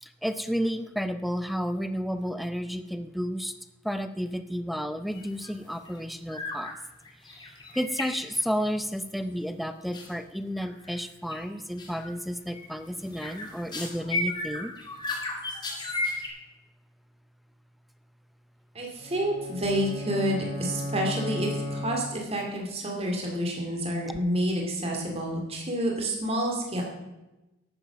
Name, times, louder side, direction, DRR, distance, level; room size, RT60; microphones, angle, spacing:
voice 1, 0.0-3.5 3.8-6.7 7.2-14.7 24.1-24.2, equal, ahead, 10 dB, 0.6 m, -32 dB
sound 1, 5.1-5.5 5.8-6.0 6.3-6.8 7.0-8.8 9.9-10.1 10.6-11.0 11.3-11.5 11.8-12.1 12.5-16.3, left 2 dB, 20° left, 2.1 m, -35 dB
voice 2, 18.7-26.8, equal, 30° right, 0 dB, 2.5 m, -29 dB
sound 2, 19.0-22.5, equal, 70° right, 2.4 m, -35 dB
13.0 x 8.9 x 6.0 m, 1.0 s
head